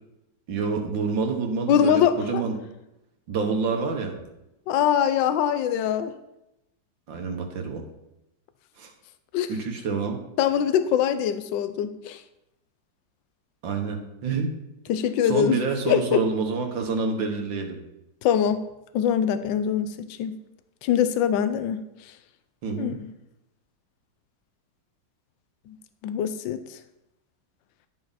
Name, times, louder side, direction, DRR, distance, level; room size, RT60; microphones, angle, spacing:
voice 1, 0.5-2.6 3.3-4.2 7.1-7.9 8.8-8.9 9.5-10.2 13.6-14.6 15.3-17.8 22.6-23.0, right 4 dB, 80° right, 4 dB, 2.1 m, -27 dB
voice 2, 1.7-2.4 4.7-6.1 9.3-9.5 10.4-12.2 14.9-15.6 15.9-16.2 18.2-18.6 18.9-20.4 20.8-21.8 22.7-23.0 25.7-25.8 26.0-26.8, left 9 dB, 80° left, 10 dB, 1.3 m, -23 dB
11.5 x 7.6 x 4.1 m, 0.89 s
omnidirectional pair, 2.0 m